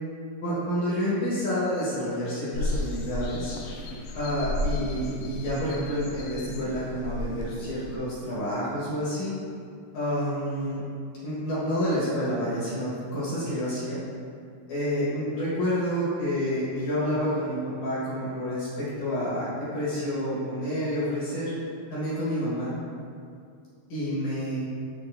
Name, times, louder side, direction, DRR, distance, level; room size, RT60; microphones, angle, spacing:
voice 1, 0.4-3.5 4.1-9.3 9.9-10.8 11.2-14.0 14.7-21.5 21.9-22.7 23.9-24.6, equal, 60° left, -9 dB, 2.3 m, -29 dB
sound 1, 2.5-8.0, left 1 dB, 80° left, 2.5 m, -33 dB
10.5 x 3.6 x 2.6 m, 2.3 s
omnidirectional pair, 4.6 m